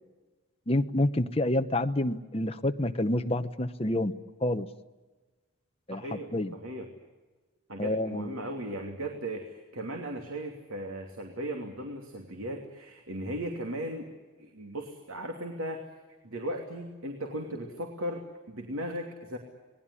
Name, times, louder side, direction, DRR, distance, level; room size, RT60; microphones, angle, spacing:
voice 1, 0.7-4.1 4.4-4.7 5.9-6.5 7.8-8.4, left 1 dB, 30° left, 8 dB, 1.0 m, -28 dB
voice 2, 5.9-6.9 7.7-14.1 14.4-15.8 16.2-19.4, right 1 dB, 90° right, 3 dB, 2.9 m, -37 dB
27.5 x 20.0 x 9.9 m, 1.3 s
head